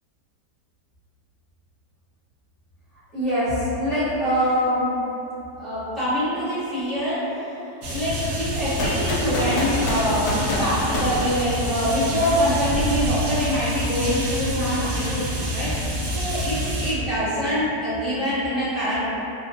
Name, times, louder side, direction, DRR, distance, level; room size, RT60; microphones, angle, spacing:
voice 1, 3.1-4.9 5.6-7.4 7.9-15.7 16.1-19.1, equal, ahead, -15 dB, 1.0 m, -24 dB
sound 1, 7.8-16.9, equal, 75° right, 1.1 m, -27 dB
sound 2, 8.8-12.0, left 1 dB, 85° left, 1.2 m, -28 dB
3.7 x 2.1 x 2.4 m, 2.9 s
omnidirectional pair, 1.9 m